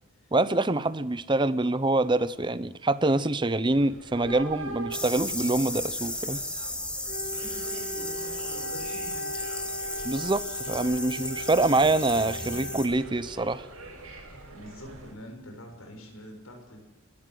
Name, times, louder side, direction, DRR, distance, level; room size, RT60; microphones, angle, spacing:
voice 1, 0.3-6.4 10.0-13.7, right 2 dB, 20° right, 15 dB, 0.7 m, -25 dB
sound 1, 3.7-15.1, right 2 dB, 85° right, 5.8 m, -44 dB
sound 2, 4.9-12.9, left 1 dB, 5° left, 1.9 m, -35 dB
voice 2, 7.1-9.4 14.5-16.8, left 1 dB, 75° left, 3 dB, 6.8 m, -45 dB
Wind instrument woodwind instrument, 7.1-13.4, left 1 dB, 45° left, 2.0 m, -39 dB
29.5 x 13.0 x 7.8 m, 1.1 s
head